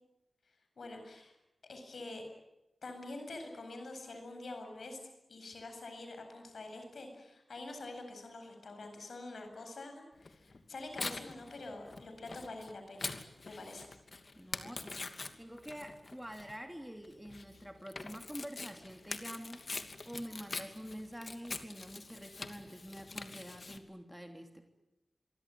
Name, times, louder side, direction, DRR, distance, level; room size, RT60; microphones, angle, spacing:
voice 1, 0.8-1.3 1.7-2.2 2.8-5.0 5.3-13.1 13.4-13.9, left 2 dB, 75° left, 5 dB, 8.0 m, -46 dB
Tearing, 10.2-23.8, left 3 dB, 50° left, 2.7 m, -44 dB
voice 2, 14.3-19.6 20.0-24.7, equal, 5° right, 4 dB, 3.1 m, -47 dB
26.5 x 24.0 x 9.4 m, 0.92 s
wide cardioid pair, 110°, 0 cm